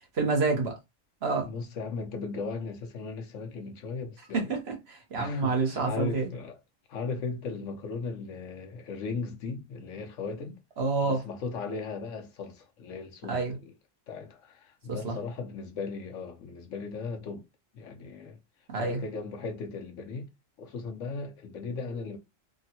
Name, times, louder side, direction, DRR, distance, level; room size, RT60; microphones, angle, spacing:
voice 1, 0.1-0.7 1.2-1.5 4.3-6.3 10.8-11.2 13.3-13.5 14.9-15.2 18.7-19.0, right 4 dB, 55° right, 1.1 m, -28 dB
voice 2, 1.4-4.6 5.2-6.6 6.9-10.6 11.0-13.7 14.1-17.4 17.7-18.4 18.8-20.3 20.6-22.2, left 4 dB, 75° left, 1.1 m, -37 dB
3.6 x 2.1 x 2.8 m
omnidirectional pair, 1.3 m